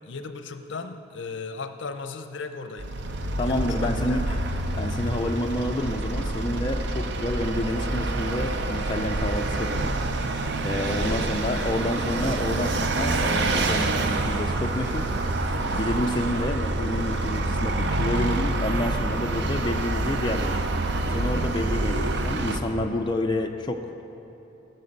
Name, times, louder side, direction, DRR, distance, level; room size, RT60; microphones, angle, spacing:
voice 1, 0.1-3.0 3.4-4.5 10.8-11.9, left 4 dB, 65° left, 8 dB, 0.6 m, -37 dB
Vehicle, 2.8-22.6, right 2 dB, 60° right, 0.6 m, -27 dB
voice 2, 3.4-4.2 4.7-9.9 10.6-15.1 15.7-20.6 21.1-24.0, left 1 dB, 25° left, 3 dB, 0.4 m, -29 dB
16.5 x 6.7 x 5.3 m, 3.0 s
head